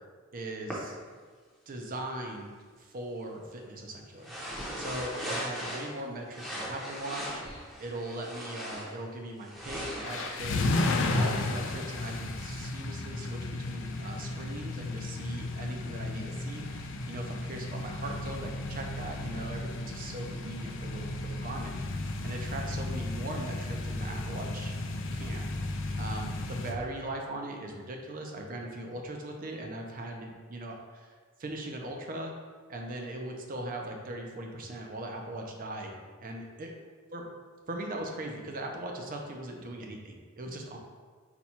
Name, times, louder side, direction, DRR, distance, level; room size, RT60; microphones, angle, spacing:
voice 1, 0.3-1.0 1.7-7.4 7.8-24.7 25.1-32.3 32.7-36.7 37.1-37.2 37.7-40.8, right 1 dB, 40° right, 2 dB, 0.5 m, -40 dB
sound 1, 0.7-0.8 4.2-6.0 6.3-9.0 9.4-11.6, equal, ahead, 0.7 m, -39 dB
sound 2, 10.0-26.7, left 2 dB, 65° left, 0.4 m, -34 dB
4.2 x 2.3 x 4.2 m, 1.5 s
head